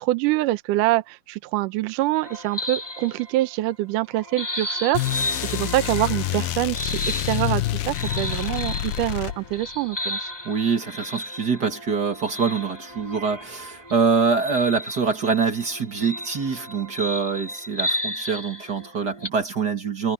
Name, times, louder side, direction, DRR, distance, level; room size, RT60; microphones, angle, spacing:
voice 1, 0.0-6.9 7.3-10.3, right 17 dB, 75° right, 2.0 m, -25 dB
sound 1, 2.2-3.7 4.1-19.3, left 1 dB, 5° left, 2.6 m, -34 dB
sound 2, 4.9-9.8, left 15 dB, 80° left, 2.5 m, -27 dB
voice 2, 10.4-20.1, right 5 dB, 40° right, 1.6 m, -24 dB
omnidirectional pair, 4.3 m